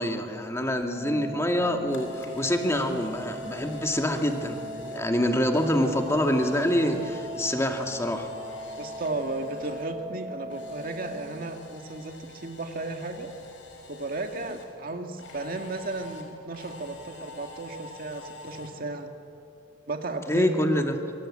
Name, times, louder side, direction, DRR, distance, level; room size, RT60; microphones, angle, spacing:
voice 1, 0.0-8.3 20.3-21.0, equal, 15° left, 4 dB, 2.2 m, -26 dB
Organ, 0.9-11.9, equal, 25° right, 2.7 m, -40 dB
Camera, 1.6-9.9 10.2-14.7 15.2-18.7, left 2 dB, 85° left, 5.1 m, -47 dB
voice 2, 8.8-13.3 13.9-19.1 19.9-20.5, right 2 dB, 50° right, 5 dB, 1.8 m, -34 dB
26.5 x 24.5 x 8.7 m, 2.6 s
head